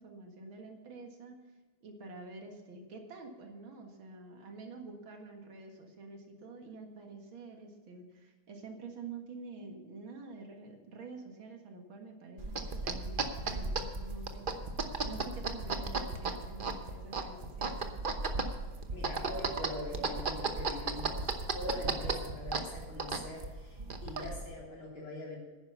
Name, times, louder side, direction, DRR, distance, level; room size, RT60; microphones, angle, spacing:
voice 1, 0.0-1.4 1.8-14.5 15.0-17.9, right 3 dB, 70° right, 3 dB, 2.5 m, -48 dB
sound 1, 12.4-24.5, right 3 dB, 50° right, 0.6 m, -36 dB
voice 2, 18.9-25.4, left 1 dB, 75° left, -3 dB, 4.6 m, -42 dB
10.5 x 10.0 x 6.8 m, 1.3 s
omnidirectional pair, 2.3 m